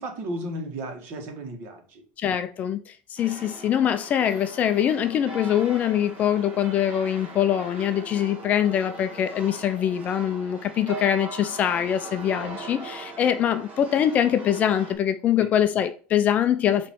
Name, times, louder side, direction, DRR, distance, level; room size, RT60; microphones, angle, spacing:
voice 1, 0.0-2.0 15.4-15.5, right 1 dB, 45° right, 1.5 m, -34 dB
voice 2, 2.2-16.9, left 10 dB, 30° left, 0.3 m, -23 dB
sound 1, 3.2-14.9, right 3 dB, 20° right, 1.4 m, -40 dB
7.2 x 3.0 x 4.6 m
cardioid pair, 170°, 5 cm